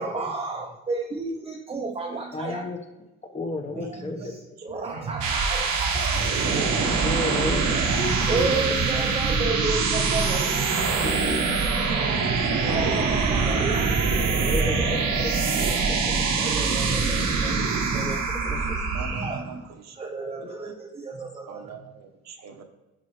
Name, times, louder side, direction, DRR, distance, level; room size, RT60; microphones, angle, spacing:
voice 1, 0.0-2.7 3.7-6.9 8.3-11.0 11.5-14.8 16.0-18.3 19.0-19.7 19.9-21.8, right 3 dB, 20° right, 3 dB, 0.7 m, -33 dB
voice 2, 2.3-2.8 3.3-4.2 4.4-4.6 6.6-8.6 11.0-11.5 14.4-15.3 15.9-16.1 18.4-18.6 20.4-20.5, left 2 dB, 25° left, 3 dB, 1.2 m, -32 dB
voice 3, 3.7-4.3 4.8-5.2 12.2-13.1 14.7-15.2 16.7-17.2 18.0-18.1 18.9-19.6 19.9-20.0 20.5-20.7 21.5-22.6, right 6 dB, 60° right, 6 dB, 1.0 m, -41 dB
sound 1, 4.9-19.5, right 4 dB, 80° right, 1.1 m, -24 dB
10.5 x 4.4 x 3.2 m, 1.0 s
cardioid pair, 90°, 30 cm